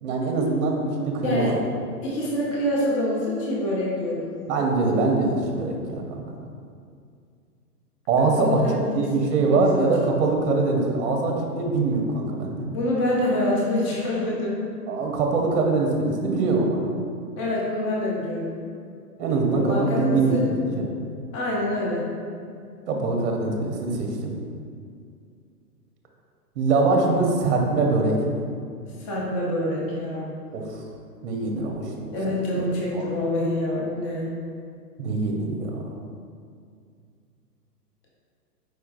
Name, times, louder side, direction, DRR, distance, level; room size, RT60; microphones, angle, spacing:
voice 1, 0.0-1.6 4.5-6.2 8.1-8.6 9.0-12.7 14.9-16.8 19.2-20.9 22.9-24.3 26.6-28.4 30.5-30.8 31.2-32.6 32.9-33.0 35.0-35.8, right 3 dB, 45° right, 1 dB, 0.7 m, -23 dB
voice 2, 2.0-4.3 8.4-9.1 9.5-9.8 12.7-14.5 17.4-18.6 19.5-20.4 21.3-22.1 29.0-30.3 32.1-34.3, left 1 dB, 20° left, -4 dB, 0.4 m, -26 dB
4.6 x 4.4 x 2.4 m, 2.3 s
hypercardioid pair, 120°, 48 cm